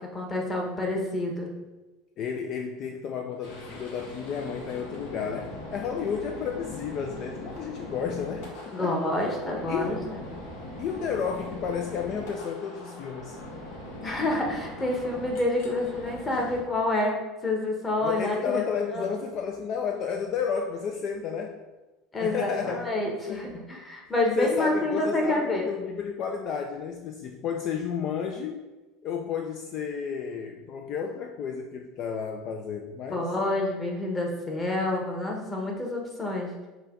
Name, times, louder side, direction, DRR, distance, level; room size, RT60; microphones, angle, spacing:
voice 1, 0.1-1.5 8.7-10.2 14.0-17.2 17.4-18.6 18.9-19.0 22.1-25.7 33.1-36.7, left 2 dB, 20° left, 0 dB, 1.1 m, -28 dB
voice 2, 2.2-9.0 9.7-10.1 10.8-13.4 18.0-21.5 22.2-22.9 23.3-23.5 24.4-28.6 29.0-33.3, left 6 dB, 50° left, 3 dB, 0.4 m, -32 dB
sound 1, 3.4-16.6, left 1 dB, 70° left, 1.0 m, -41 dB
5.5 x 2.3 x 3.6 m, 1.1 s
supercardioid pair, 100°, 0 cm